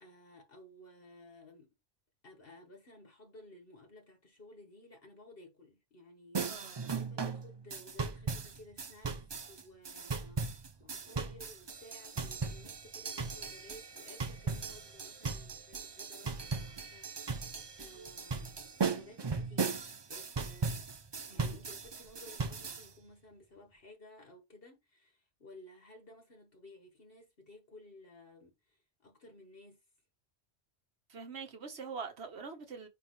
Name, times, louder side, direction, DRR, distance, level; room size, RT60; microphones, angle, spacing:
voice 1, 0.0-1.7 2.2-18.5 18.9-20.9 21.2-29.8, left 1 dB, 55° left, 1.6 m, -56 dB
sound 1, 6.3-22.9, right 4 dB, 35° right, 0.4 m, -38 dB
voice 2, 6.4-6.9 21.3-21.5 31.1-32.9, right 5 dB, 65° right, 1.5 m, -44 dB
9.7 x 3.3 x 3.2 m
omnidirectional pair, 1.2 m